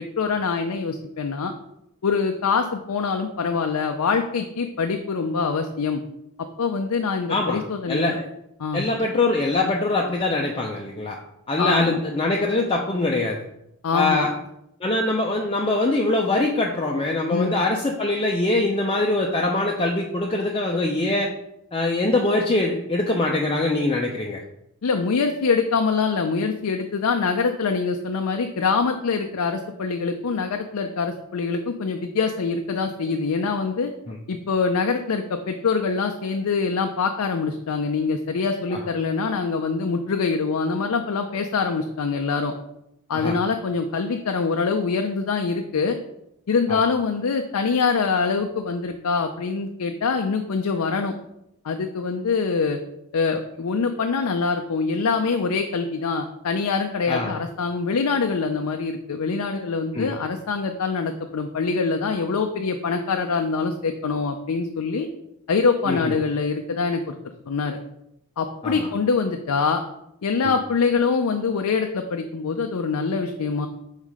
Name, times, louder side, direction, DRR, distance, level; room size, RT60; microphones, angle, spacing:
voice 1, 0.0-1.5 2.0-6.0 6.6-8.2 8.6-8.8 11.6-12.0 13.8-14.3 17.3-17.6 24.8-33.9 34.3-42.5 43.1-46.0 46.5-51.1 51.6-52.8 53.1-65.1 65.5-67.2 67.5-67.8 68.4-69.8 70.2-73.7, left 4 dB, 85° left, 5 dB, 0.5 m, -24 dB
voice 2, 7.3-7.6 7.9-8.3 8.7-11.2 11.5-13.4 13.9-14.3 14.8-21.3 21.7-24.4 34.1-34.2 38.7-38.8 43.1-43.4 46.7-46.8 57.1-57.3 59.9-60.1 65.9-66.1 68.6-68.9 70.4-70.6, left 2 dB, 25° left, 0 dB, 0.5 m, -23 dB
5.6 x 4.1 x 4.8 m, 0.81 s
head